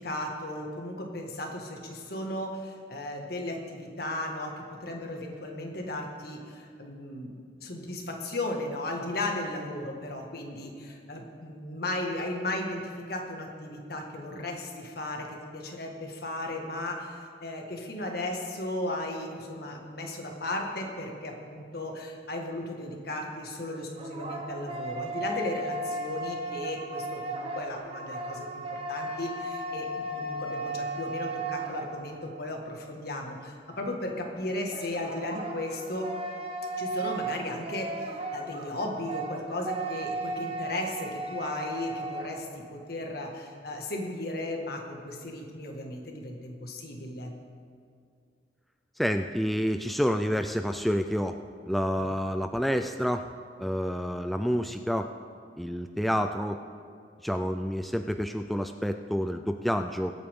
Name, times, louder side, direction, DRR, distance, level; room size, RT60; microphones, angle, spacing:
voice 1, 0.0-36.1 36.8-47.3 52.0-52.1, left 1 dB, 60° left, 1 dB, 1.8 m, -35 dB
sound 1, 23.7-32.4 34.7-42.5, right 2 dB, 30° right, 1.0 m, -35 dB
voice 2, 49.0-51.4 51.6-53.3 53.6-55.1 55.6-56.6 57.2-60.1, equal, ahead, 6 dB, 0.3 m, -28 dB
23.0 x 8.7 x 3.7 m, 2.2 s
head